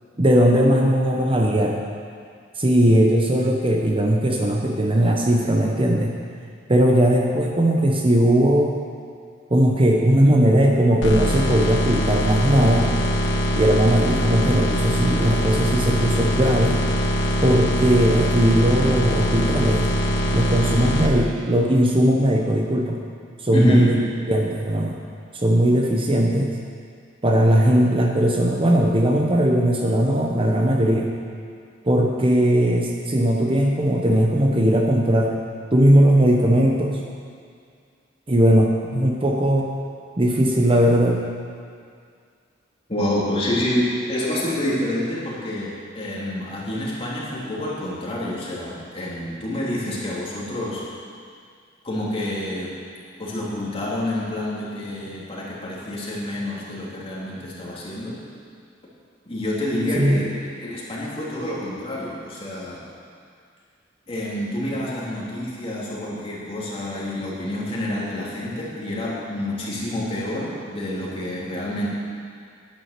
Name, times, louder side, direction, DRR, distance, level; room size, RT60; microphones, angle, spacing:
voice 1, 0.2-1.8 2.6-6.1 6.7-8.8 9.5-12.9 13.6-16.8 17.4-19.9 20.3-23.0 23.4-24.0 24.3-25.0 25.3-26.5 27.2-31.1 31.8-35.3 35.7-37.0 38.3-39.7 40.2-41.2 59.9-60.2, right 1 dB, 30° right, 0 dB, 0.9 m, -18 dB
sound 1, 11.0-21.1, equal, 65° left, 1.3 m, -22 dB
voice 2, 23.5-23.9 42.9-50.8 51.8-52.7 53.2-58.2 59.3-62.8 64.1-71.9, left 1 dB, 30° left, -6 dB, 3.0 m, -28 dB
11.0 x 9.8 x 6.7 m, 2.2 s
head